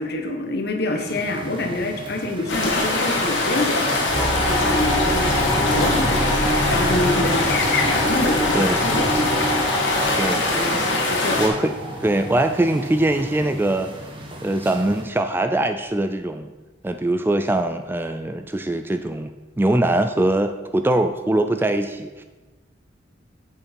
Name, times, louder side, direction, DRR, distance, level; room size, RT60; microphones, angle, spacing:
voice 1, 0.0-10.1 10.5-10.8 11.1-11.4, left 2 dB, 55° left, 4 dB, 1.3 m, -27 dB
sound 1, 1.1-15.0, equal, 25° right, 1.1 m, -34 dB
sound 2, 2.5-11.5, left 2 dB, 75° left, 2.3 m, -23 dB
sound 3, 4.1-13.4, equal, 5° left, 1.0 m, -27 dB
voice 2, 10.2-10.5 11.4-11.7 12.0-13.9 14.4-16.5 16.8-19.3 19.6-22.2, right 1 dB, 10° right, 8 dB, 0.3 m, -22 dB
8.2 x 7.0 x 5.2 m, 1.2 s
head